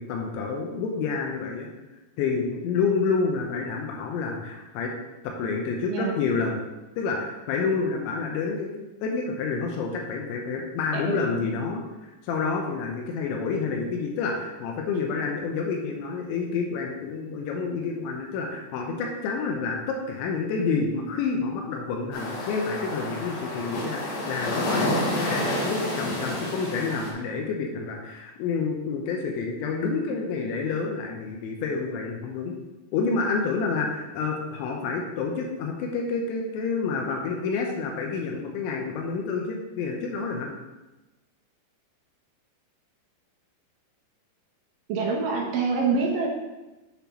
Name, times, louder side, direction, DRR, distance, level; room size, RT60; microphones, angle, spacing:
voice 1, 0.0-1.7 2.2-4.9 5.2-6.6 7.0-8.7 9.0-25.0 25.3-32.5 32.9-40.5, left 4 dB, 90° left, 1 dB, 3.1 m, -29 dB
voice 2, 10.9-11.6 44.9-46.3, right 4 dB, 80° right, -1 dB, 2.0 m, -26 dB
sound 1, 22.1-27.1, left 1 dB, 70° left, 4.0 m, -29 dB
7.7 x 6.9 x 3.0 m, 1.1 s
omnidirectional pair, 5.1 m